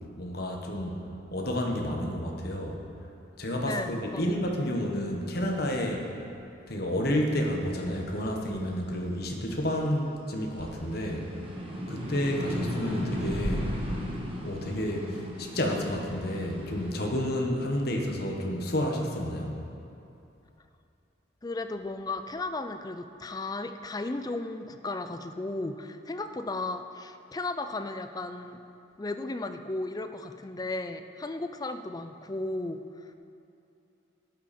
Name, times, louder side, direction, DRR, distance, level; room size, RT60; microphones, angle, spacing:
voice 1, 0.2-1.0 1.3-2.8 3.4-6.1 6.7-11.3 11.9-13.7 14.4-19.6, equal, 55° left, 1 dB, 1.3 m, -30 dB
voice 2, 3.7-4.4 21.4-28.6 29.0-33.1, left 2 dB, 20° left, 8 dB, 0.4 m, -35 dB
sound 1, 7.6-10.0 10.4-17.1, equal, 30° right, 1.3 m, -35 dB
12.0 x 10.0 x 4.3 m, 2.8 s
head